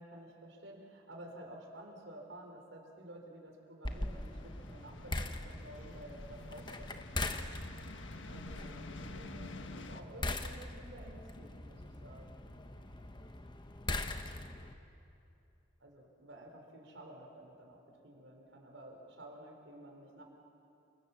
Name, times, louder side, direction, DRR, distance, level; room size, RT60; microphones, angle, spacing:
voice 1, 0.0-7.0 8.2-12.4 15.8-20.2, right 1 dB, 75° right, 1 dB, 4.8 m, -52 dB
sound 1, 3.8-14.7, left 2 dB, 25° left, 1.1 m, -42 dB
sound 2, 3.9-10.0, left 2 dB, 75° left, 1.5 m, -50 dB
29.0 x 26.5 x 7.4 m, 2.8 s
head